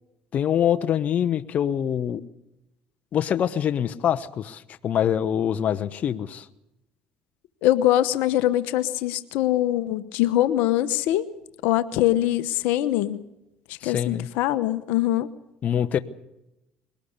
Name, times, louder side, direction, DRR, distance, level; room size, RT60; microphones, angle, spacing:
voice 1, 0.3-2.2 3.1-6.5 13.8-14.3 15.6-16.0, left 9 dB, 50° left, 10 dB, 1.0 m, -24 dB
voice 2, 7.6-11.3 11.6-13.2 13.7-15.3, left 13 dB, 80° left, 12 dB, 1.1 m, -23 dB
22.5 x 19.0 x 6.7 m, 0.89 s
supercardioid pair, 80°, 3 cm